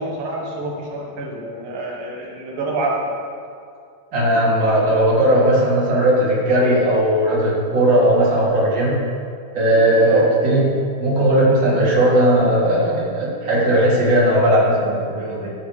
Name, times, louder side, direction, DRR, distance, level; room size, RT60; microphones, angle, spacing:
voice 1, 0.0-3.0 10.0-10.3, right 2 dB, 85° right, -4 dB, 3.7 m, -27 dB
voice 2, 4.1-9.0 9.5-10.6 11.0-15.5, right 1 dB, 35° right, -7 dB, 3.7 m, -17 dB
15.5 x 12.5 x 3.5 m, 2.4 s
omnidirectional pair, 3.9 m